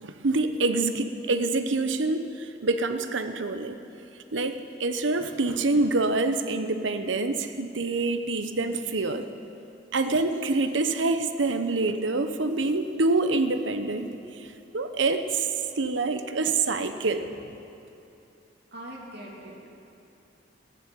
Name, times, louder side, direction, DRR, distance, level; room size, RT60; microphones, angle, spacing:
voice 1, 0.0-3.8 4.3-9.3 9.9-14.1 14.7-15.5 15.8-17.2, right 3 dB, 85° right, 8 dB, 0.9 m, -26 dB
voice 2, 18.7-19.7, right 1 dB, 60° right, -4 dB, 2.8 m, -42 dB
15.0 x 10.5 x 8.7 m, 2.8 s
head